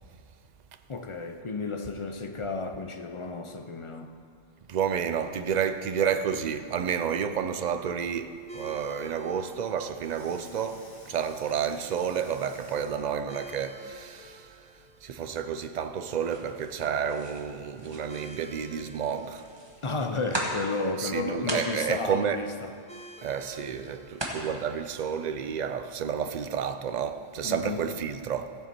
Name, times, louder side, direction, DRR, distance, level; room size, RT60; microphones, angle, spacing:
voice 1, 0.9-4.1 15.5-15.6 19.8-22.7 27.4-27.8, left 3 dB, 35° left, 0.6 m, -32 dB
voice 2, 4.7-14.5 15.0-19.4 21.0-22.4 23.2-28.5, right 7 dB, 55° right, 0.5 m, -30 dB
sound 1, 8.5-27.6, right 1 dB, 5° left, 0.9 m, -53 dB
Water tap faucet / Sink (filling or washing), 9.9-13.9 14.5-14.6, left 1 dB, 75° left, 3.8 m, -53 dB
sound 2, 16.1-24.4, right 1 dB, 25° right, 1.2 m, -40 dB
15.0 x 7.0 x 4.5 m
omnidirectional pair, 1.2 m